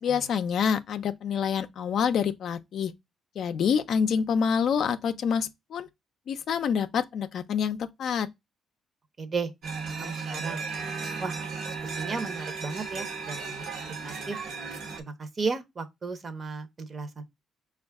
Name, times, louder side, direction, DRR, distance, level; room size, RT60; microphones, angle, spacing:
voice 1, 0.0-2.9 3.4-5.9 6.3-8.3, left 7 dB, 65° left, 0.4 m, -27 dB
voice 2, 9.2-9.5 9.9-10.6 11.2-11.3 11.7-14.4 15.0-17.2, right 4 dB, 40° right, 0.7 m, -35 dB
sound 1, 9.6-15.0, right 4 dB, 75° right, 0.9 m, -35 dB
5.1 x 2.4 x 3.4 m
cardioid pair, 90°, 0 cm